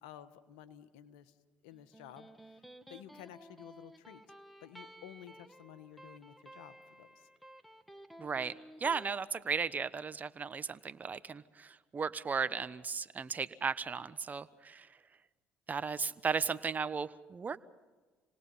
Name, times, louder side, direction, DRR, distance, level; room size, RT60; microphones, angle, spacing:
voice 1, 0.0-1.3 1.6-2.3 2.9-4.2 4.6-7.1, left 11 dB, 85° left, 11 dB, 1.2 m, -52 dB
Electric guitar, 1.7-9.1, right 1 dB, ahead, 2.0 m, -54 dB
voice 2, 8.2-14.9 15.7-17.6, right 5 dB, 35° right, 13 dB, 1.1 m, -36 dB
29.0 x 19.0 x 5.7 m, 1.3 s
supercardioid pair, 70°, 5 cm